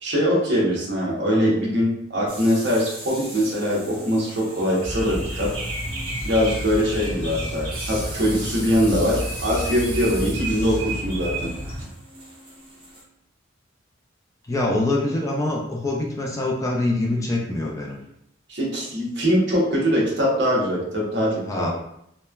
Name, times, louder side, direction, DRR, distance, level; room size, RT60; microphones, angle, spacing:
voice 1, 0.0-5.5 6.2-11.5 18.5-21.7, equal, 65° right, -4 dB, 0.9 m, -22 dB
sound 1, 2.3-13.0, right 1 dB, 25° right, 0.7 m, -40 dB
sound 2, 4.8-11.8, equal, 80° right, 1.2 m, -30 dB
voice 2, 14.5-18.0 21.5-21.7, left 2 dB, 15° left, -2 dB, 0.3 m, -24 dB
3.0 x 2.1 x 2.2 m, 0.76 s
head